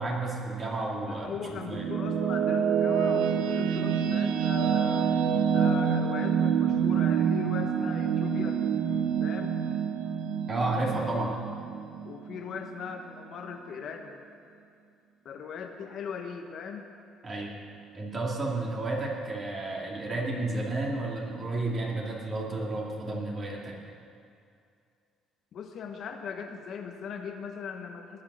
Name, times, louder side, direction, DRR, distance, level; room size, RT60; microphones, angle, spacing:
voice 1, 0.0-1.3 1.7-1.9 10.5-11.4 17.2-17.5 17.9-23.7, right 2 dB, 35° right, -2 dB, 2.5 m, -31 dB
voice 2, 1.1-5.1 5.5-8.6 9.2-9.6 10.8-11.2 12.0-14.1 15.2-16.9 25.5-28.2, left 6 dB, 55° left, 4 dB, 1.1 m, -39 dB
sound 1, 1.3-12.6, right 7 dB, 85° right, 0.7 m, -27 dB
19.0 x 6.4 x 6.2 m, 2.4 s
cardioid pair, 115°, 0 cm